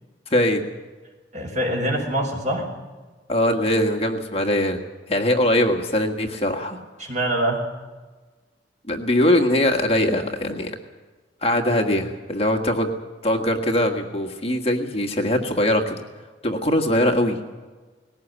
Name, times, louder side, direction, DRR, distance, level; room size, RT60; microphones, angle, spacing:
voice 1, 0.3-0.6 3.3-4.8 5.1-6.8 8.9-10.7 11.4-12.9 13.2-16.0 16.4-17.4, left 1 dB, 35° left, 3 dB, 1.6 m, -21 dB
voice 2, 1.3-2.7 7.0-7.7, right 1 dB, 45° right, 1 dB, 5.2 m, -24 dB
20.0 x 17.5 x 8.3 m, 1.3 s
head